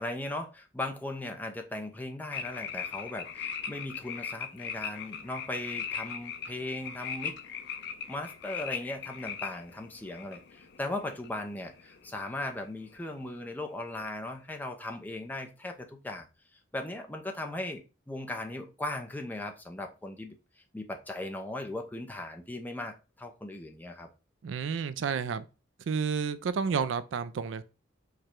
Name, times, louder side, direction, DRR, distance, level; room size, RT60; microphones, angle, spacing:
voice 1, 0.0-7.4 8.1-16.3 16.7-20.4 20.7-24.1, left 1 dB, 10° left, 0.5 m, -38 dB
sound 1, 2.3-12.5 12.8-13.2, left 7 dB, 60° left, 0.5 m, -40 dB
voice 2, 24.4-25.5 25.9-27.6, right 6 dB, 70° right, 0.4 m, -30 dB
4.8 x 2.2 x 4.3 m
head